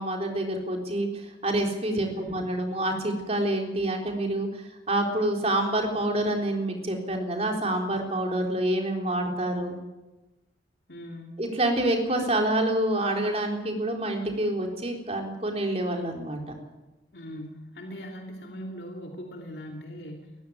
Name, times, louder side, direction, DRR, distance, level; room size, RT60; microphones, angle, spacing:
voice 1, 0.0-9.8 11.4-16.4, right 1 dB, 35° right, 2 dB, 3.8 m, -27 dB
voice 2, 1.9-2.4 10.9-11.4 17.1-20.3, equal, 65° left, 1 dB, 2.7 m, -40 dB
20.0 x 15.0 x 9.3 m, 1.1 s
head